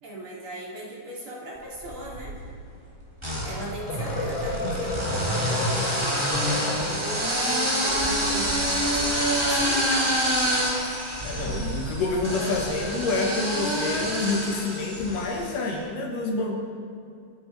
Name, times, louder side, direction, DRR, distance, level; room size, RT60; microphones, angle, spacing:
voice 1, 0.0-2.3 3.4-10.2, right 2 dB, 40° right, -5 dB, 3.7 m, -38 dB
sound 1, 1.8-2.5 3.2-15.5, equal, 10° right, 3.1 m, -27 dB
sound 2, 3.6-7.5, left 2 dB, 40° left, 2.2 m, -31 dB
voice 2, 11.2-16.6, left 3 dB, 85° left, 1 dB, 3.4 m, -28 dB
22.5 x 11.5 x 4.8 m, 2.4 s
omnidirectional pair, 3.7 m